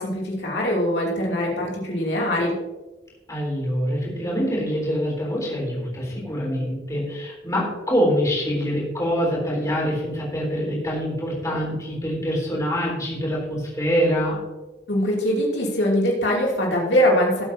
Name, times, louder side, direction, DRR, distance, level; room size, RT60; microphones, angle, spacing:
voice 1, 0.0-2.6 14.9-17.4, equal, 90° left, -3 dB, 3.0 m, -22 dB
voice 2, 3.3-14.4, equal, 20° left, -4 dB, 3.9 m, -25 dB
18.0 x 8.2 x 2.9 m, 1.1 s
head